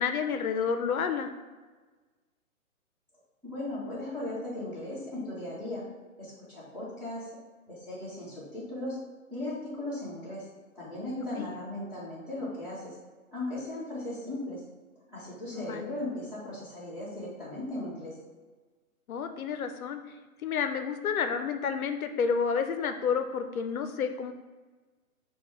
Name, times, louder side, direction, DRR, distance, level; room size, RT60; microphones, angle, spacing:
voice 1, 0.0-1.3 11.3-11.5 15.5-15.9 19.1-20.0 20.4-24.3, left 6 dB, 75° left, 7 dB, 0.5 m, -30 dB
voice 2, 3.4-5.8 6.2-7.3 7.7-9.0 9.3-10.5 10.7-13.0 13.3-14.6 15.1-18.2, left 1 dB, 5° right, -11 dB, 0.9 m, -37 dB
6.0 x 2.3 x 3.1 m, 1.3 s
hypercardioid pair, 140°, 43 cm